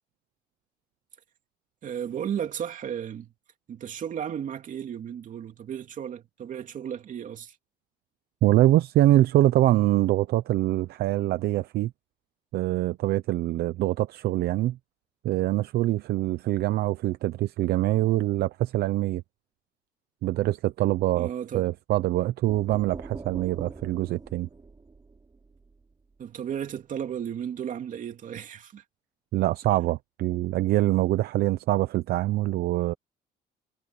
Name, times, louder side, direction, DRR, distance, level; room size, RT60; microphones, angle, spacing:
voice 1, 1.8-3.3 3.7-7.6 21.1-21.7 26.2-28.8, right 9 dB, 50° right, 2.8 m, -34 dB
voice 2, 8.4-11.9 12.5-14.8 15.2-19.2 20.2-24.5 29.3-32.9, right 15 dB, 70° right, 0.8 m, -24 dB
sound 1, 22.5-26.2, right 4 dB, 25° right, 5.6 m, -44 dB
cardioid pair, 110°, 17 cm